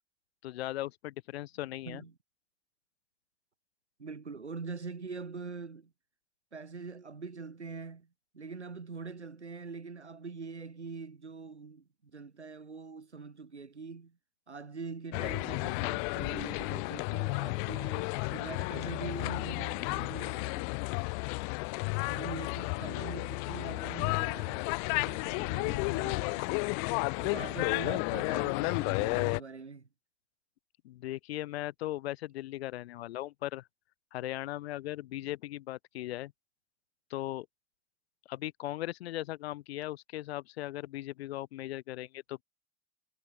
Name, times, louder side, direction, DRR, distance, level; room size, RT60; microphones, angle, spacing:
voice 1, 0.4-2.0 30.8-33.7 34.1-36.3 37.1-37.5 38.3-42.4, left 15 dB, 65° left, 3.8 m, -38 dB
voice 2, 4.0-5.9 6.5-8.1 8.3-11.8 12.1-14.2 14.5-20.8 22.0-24.7 25.0-26.5 27.2-29.9, right 4 dB, 85° right, 7.9 m, -43 dB
sound 1, 15.1-29.4, left 40 dB or more, 45° left, 0.4 m, -32 dB
figure-of-eight pair, 75°, 33 cm